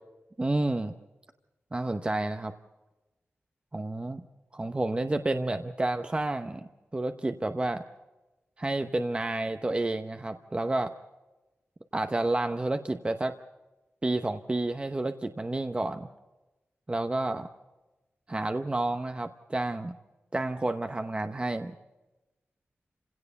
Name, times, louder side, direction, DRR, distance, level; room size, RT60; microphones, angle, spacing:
voice 1, 0.4-1.0 1.7-2.5 3.7-4.2 4.5-7.8 8.6-10.9 11.9-13.3 14.0-16.1 16.9-17.5 18.3-19.9 20.3-21.7, right 2 dB, 25° right, 7 dB, 0.9 m, -30 dB
29.0 x 17.0 x 5.4 m, 1.1 s
wide cardioid pair, 115°, 5 cm